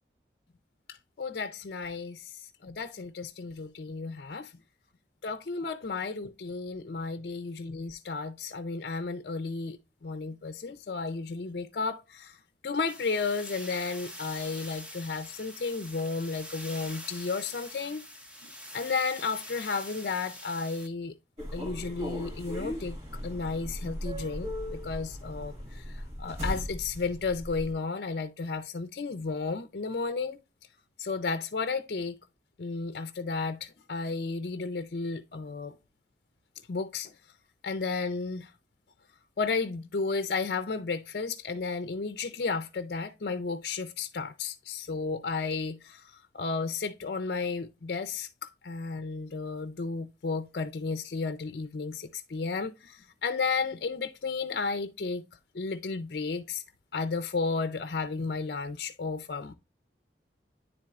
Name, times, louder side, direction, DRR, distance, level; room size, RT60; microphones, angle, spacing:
voice 1, 0.9-4.5 5.2-9.8 10.0-18.1 18.4-21.1 21.5-30.4 31.0-32.2 32.6-35.8 36.7-37.1 37.6-38.5 39.4-55.2 55.5-56.6 56.9-59.5, left 4 dB, 55° left, 0.5 m, -33 dB
sound 1, 12.9-20.9, left 1 dB, 5° right, 0.7 m, -44 dB
sound 2, 21.4-27.7, equal, 35° right, 1.6 m, -37 dB
9.6 x 4.3 x 2.3 m
head